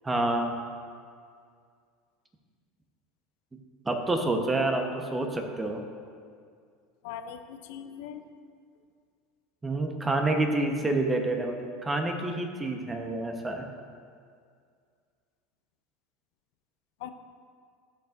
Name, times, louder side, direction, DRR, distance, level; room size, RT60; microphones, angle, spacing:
voice 1, 0.0-0.5 3.9-5.8 9.6-13.6, right 2 dB, 15° right, 3 dB, 1.0 m, -28 dB
voice 2, 7.0-8.2 17.0-17.1, left 9 dB, 70° left, 8 dB, 0.5 m, -40 dB
15.0 x 5.4 x 2.6 m, 2.2 s
hypercardioid pair, 90°, 0 cm